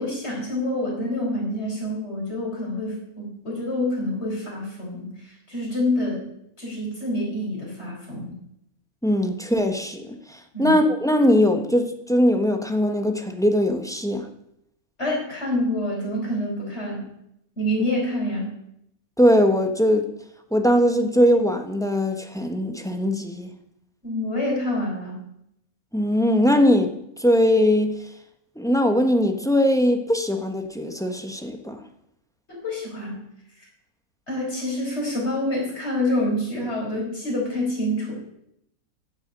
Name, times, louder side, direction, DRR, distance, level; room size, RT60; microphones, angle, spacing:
voice 1, 0.0-6.3 6.6-8.3 10.5-10.7 15.0-17.1 17.6-18.5 24.0-25.2 32.5-33.2 33.6-33.7 34.3-38.2, left 1 dB, 50° left, -3 dB, 5.1 m, -27 dB
voice 2, 9.0-14.3 19.2-20.1 20.5-23.5 25.9-27.9 28.6-31.8, equal, 5° left, 6 dB, 1.0 m, -20 dB
10.5 x 7.1 x 8.9 m, 0.77 s
omnidirectional pair, 1.5 m